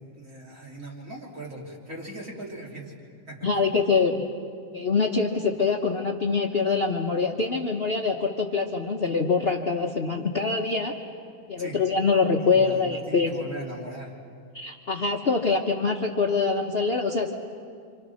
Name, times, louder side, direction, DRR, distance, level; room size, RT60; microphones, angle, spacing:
voice 1, 0.0-2.9 3.3-3.6 11.5-11.8 12.4-14.2, right 1 dB, 40° right, -2 dB, 3.6 m, -39 dB
voice 2, 3.4-4.3 4.7-10.9 11.5-13.3 14.5-17.3, left 4 dB, 40° left, 1 dB, 1.1 m, -24 dB
28.5 x 26.0 x 6.4 m, 2.3 s
omnidirectional pair, 2.1 m